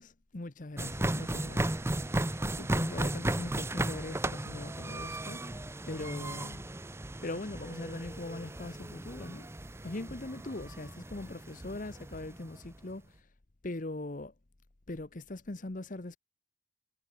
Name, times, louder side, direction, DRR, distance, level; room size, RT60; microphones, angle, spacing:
voice 1, 0.0-5.6 5.9-6.6 7.2-13.3 13.6-14.3 14.9-16.2, left 2 dB, 40° left, 1.0 m, -41 dB
sound 1, 0.8-12.8, right 1 dB, 15° right, 0.8 m, -35 dB
head